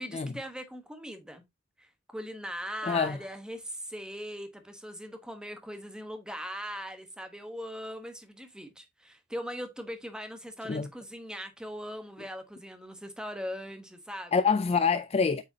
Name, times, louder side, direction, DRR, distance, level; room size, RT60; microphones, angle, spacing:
voice 1, 0.0-1.4 1.8-1.9 2.1-14.3, equal, 5° right, 1.1 m, -40 dB
voice 2, 2.8-3.2 10.7-10.9 14.3-15.4, left 5 dB, 30° left, 0.4 m, -26 dB
8.2 x 4.9 x 2.8 m
head